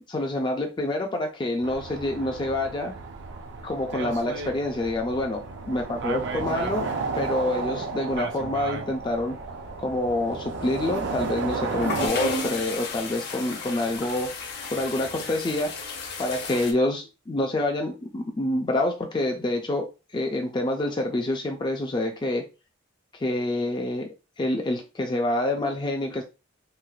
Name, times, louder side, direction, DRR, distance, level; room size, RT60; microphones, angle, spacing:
voice 1, 0.0-2.9 3.6-6.9 7.2-9.4 9.8-14.3 14.7-15.8 16.2-22.5 23.2-24.1 24.4-26.2, left 1 dB, 20° left, 0.3 m, -27 dB
sound 1, 1.6-12.1, right 4 dB, 55° right, 0.5 m, -33 dB
sound 2, 11.7-16.7, left 3 dB, 50° left, 0.7 m, -33 dB
3.1 x 2.8 x 2.3 m
head